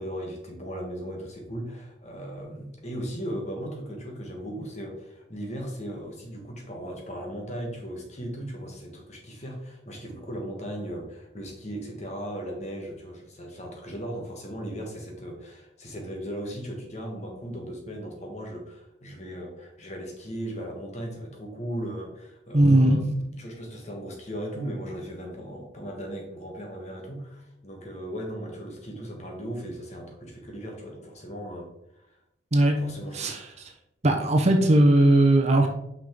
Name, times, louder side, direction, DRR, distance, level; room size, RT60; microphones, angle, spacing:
voice 1, 0.0-31.7 31.9-32.2 32.8-33.4, equal, 35° left, 1 dB, 1.4 m, -37 dB
voice 2, 22.5-23.0 32.5-32.8 33.1-33.4 34.0-35.7, right 1 dB, 35° right, 2 dB, 0.8 m, -18 dB
6.0 x 5.4 x 3.7 m, 0.83 s
head